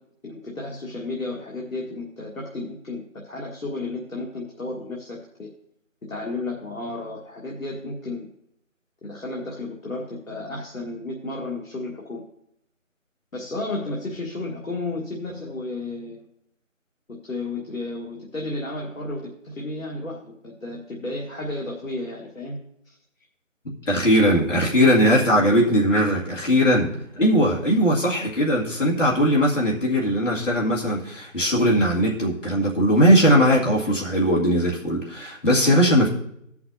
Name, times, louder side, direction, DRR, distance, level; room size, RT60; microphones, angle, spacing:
voice 1, 0.2-5.5 6.1-8.3 9.0-12.3 13.3-16.3 17.1-22.6 22.9-23.0 27.7-27.8, left 2 dB, 90° left, -2 dB, 1.6 m, -33 dB
voice 2, 23.7-36.1, equal, 65° left, -4 dB, 2.1 m, -19 dB
17.5 x 5.8 x 2.7 m, 0.74 s
figure-of-eight pair, 180°, 40 cm